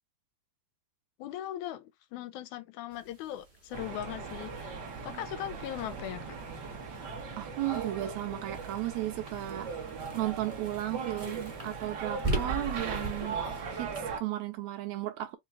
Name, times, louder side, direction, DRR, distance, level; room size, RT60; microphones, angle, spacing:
voice 1, 1.2-6.3, left 12 dB, 85° left, 2.0 m, -39 dB
sound 1, 2.9-14.1, right 2 dB, 25° right, 0.8 m, -41 dB
sound 2, 3.7-14.2, right 5 dB, 55° right, 1.2 m, -39 dB
voice 2, 7.4-9.7 10.1-13.4 13.7-15.4, right 15 dB, 80° right, 1.9 m, -34 dB
5.3 x 2.4 x 3.4 m
omnidirectional pair, 3.4 m